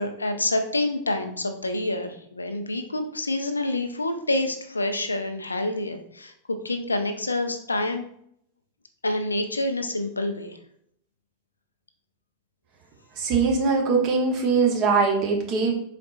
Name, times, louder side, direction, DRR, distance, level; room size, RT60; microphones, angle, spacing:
voice 1, 0.0-6.3 6.6-8.0 9.0-10.6, left 2 dB, 80° left, 6 dB, 0.5 m, -27 dB
voice 2, 13.2-15.7, right 4 dB, 40° right, 1 dB, 1.0 m, -22 dB
4.2 x 4.1 x 2.4 m, 0.69 s
figure-of-eight pair, 90°, 0 cm